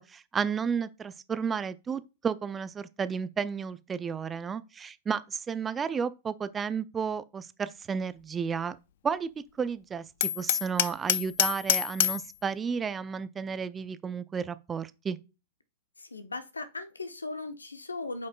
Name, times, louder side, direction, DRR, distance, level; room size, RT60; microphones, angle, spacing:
voice 1, 0.0-8.8 9.0-15.2, right 6 dB, 20° right, 0.5 m, -32 dB
Hammer, 10.2-12.3, left 13 dB, 60° left, 0.4 m, -27 dB
voice 2, 16.0-18.3, left 3 dB, 90° left, 0.8 m, -38 dB
7.7 x 5.3 x 2.3 m
hypercardioid pair, 105°, 0 cm